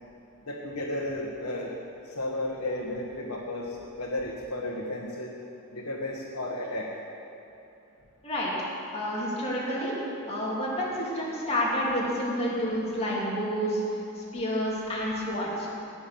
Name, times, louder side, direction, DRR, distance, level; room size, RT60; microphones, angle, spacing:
voice 1, 0.5-1.7 2.1-5.3 5.7-6.9, left 1 dB, 80° left, -4 dB, 1.4 m, -33 dB
voice 2, 8.9-10.0 10.3-13.8 14.2-15.7, equal, 30° left, -5 dB, 2.8 m, -29 dB
18.0 x 6.2 x 7.0 m, 2.8 s
head